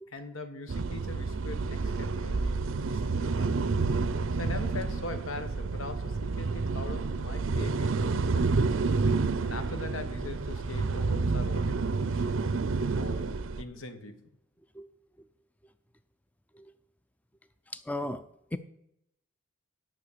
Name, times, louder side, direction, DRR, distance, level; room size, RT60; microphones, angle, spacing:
voice 1, 0.1-3.6 4.3-8.7 9.4-12.4 13.0-13.3 13.6-14.3, left 2 dB, 85° left, 8 dB, 1.2 m, -41 dB
sound 1, 0.7-13.6, right 4 dB, 75° right, 0.5 m, -29 dB
voice 2, 17.7-18.2 18.5-18.6, left 1 dB, 5° left, 11 dB, 0.4 m, -37 dB
9.9 x 6.1 x 6.7 m, 0.80 s
head